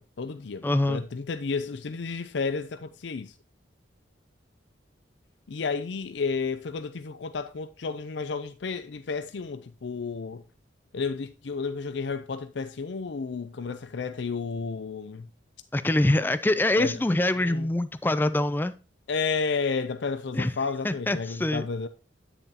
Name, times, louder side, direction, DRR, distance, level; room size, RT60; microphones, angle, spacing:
voice 1, 0.0-3.3 5.5-10.4 10.9-15.3 16.8-17.0 17.3-17.7 19.1-21.9, left 4 dB, 65° left, 0.5 m, -32 dB
voice 2, 0.6-1.0 15.7-18.7 20.3-20.5 20.8-21.7, left 1 dB, 10° left, 0.3 m, -24 dB
9.9 x 6.9 x 2.8 m
head